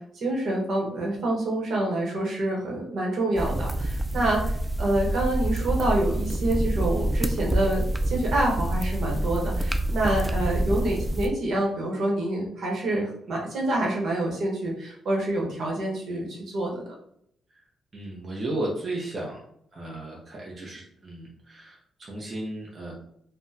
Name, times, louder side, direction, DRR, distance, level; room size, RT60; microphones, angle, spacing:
voice 1, 0.0-16.8, right 1 dB, 65° right, -2 dB, 1.1 m, -27 dB
sound 1, 3.3-11.3, right 1 dB, 10° right, 0.3 m, -27 dB
voice 2, 17.9-19.4 19.7-22.9, right 1 dB, 35° right, -3 dB, 0.7 m, -34 dB
3.5 x 2.1 x 2.7 m, 0.69 s
cardioid pair, 105°, 0 cm